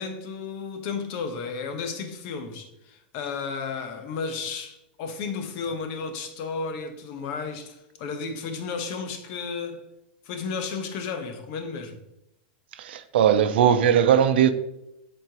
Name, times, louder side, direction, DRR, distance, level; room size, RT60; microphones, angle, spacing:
voice 1, 0.0-9.8 10.3-12.0, left 5 dB, 50° left, 1.0 m, -33 dB
voice 2, 12.8-14.5, right 9 dB, 80° right, 0.6 m, -19 dB
7.6 x 4.3 x 3.0 m
supercardioid pair, 140°, 6 cm